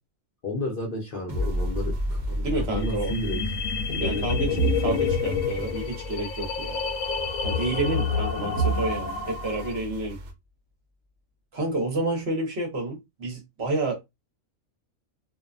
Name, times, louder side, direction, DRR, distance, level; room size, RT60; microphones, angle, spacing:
voice 1, 0.4-3.4 3.9-5.0, left 2 dB, 55° left, 0.7 m, -32 dB
sound 1, 1.3-8.3 8.8-8.9, equal, 20° right, 0.9 m, -33 dB
sound 2, 1.3-4.3 4.6-8.3 8.6-10.3, right 4 dB, 75° right, 1.1 m, -34 dB
voice 2, 2.4-3.1 4.0-4.5 4.8-6.9 7.4-10.2 11.5-14.0, right 2 dB, 55° right, 1.1 m, -29 dB
sound 3, 2.8-9.8, left 5 dB, 85° left, 1.0 m, -29 dB
2.6 x 2.1 x 2.3 m
omnidirectional pair, 1.4 m